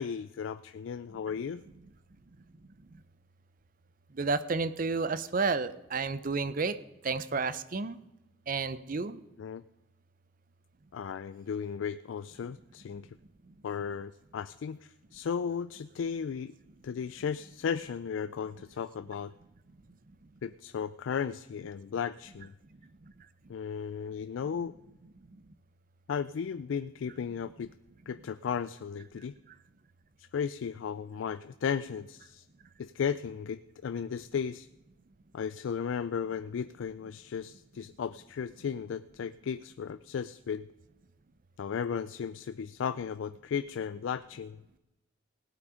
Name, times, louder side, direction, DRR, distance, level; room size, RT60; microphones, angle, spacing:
voice 1, 0.0-1.6 9.4-9.6 10.9-13.2 13.6-16.5 16.8-19.3 20.4-22.5 23.5-24.7 26.1-27.7 28.1-29.4 30.2-32.5 32.8-34.7 35.3-40.7 41.6-44.6, left 7 dB, 75° left, 13 dB, 0.3 m, -35 dB
voice 2, 4.1-6.8 7.0-8.0 8.5-9.2, right 4 dB, 45° right, 15 dB, 0.6 m, -31 dB
17.5 x 8.4 x 5.0 m, 0.98 s
head